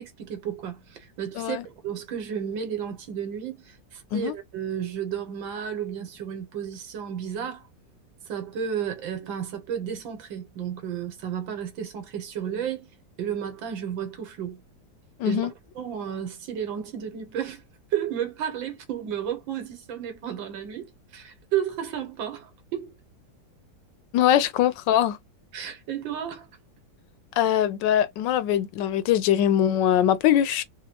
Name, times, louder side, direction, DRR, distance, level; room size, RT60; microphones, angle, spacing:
voice 1, 0.0-7.7 8.3-12.9 13.2-14.6 15.3-17.6 17.9-22.9 25.5-26.5, right 9 dB, 90° right, 1.8 m, -32 dB
voice 2, 15.2-15.5 24.1-25.2 27.4-30.6, left 11 dB, 75° left, 1.2 m, -22 dB
4.0 x 2.3 x 2.8 m
omnidirectional pair, 2.0 m